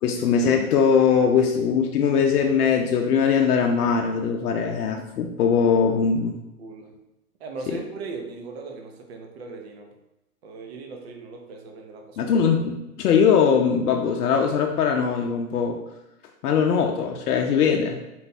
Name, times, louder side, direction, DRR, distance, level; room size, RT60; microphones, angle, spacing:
voice 1, 0.0-6.3 12.2-15.8 16.4-18.0, left 6 dB, 70° left, 3 dB, 0.6 m, -21 dB
voice 2, 6.6-6.9 7.4-9.9 10.4-12.4, right 4 dB, 45° right, 3 dB, 0.6 m, -38 dB
4.0 x 2.2 x 4.0 m, 0.92 s
hypercardioid pair, 160°, 46 cm